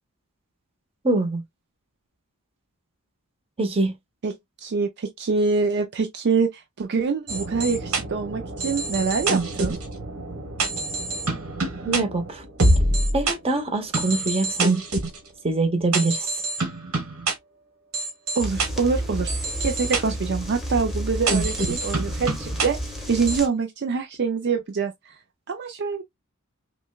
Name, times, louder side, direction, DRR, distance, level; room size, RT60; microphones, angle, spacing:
voice 1, 1.0-1.4 3.6-3.9 11.8-12.4 13.1-14.8 15.4-16.3, right 2 dB, 25° right, 0.9 m, -24 dB
voice 2, 4.6-9.8 18.4-19.3 19.6-22.8 23.1-25.2 25.5-26.0, right 4 dB, 50° right, 0.4 m, -25 dB
sound 1, 7.3-13.3 13.9-15.2 15.9-17.3 17.9-18.7 19.3-20.0 21.3-22.7 23.3-23.4, right 2 dB, 70° right, 1.4 m, -26 dB
sound 2, 18.4-23.5, equal, ahead, 1.0 m, -31 dB
5.9 x 2.2 x 2.3 m
head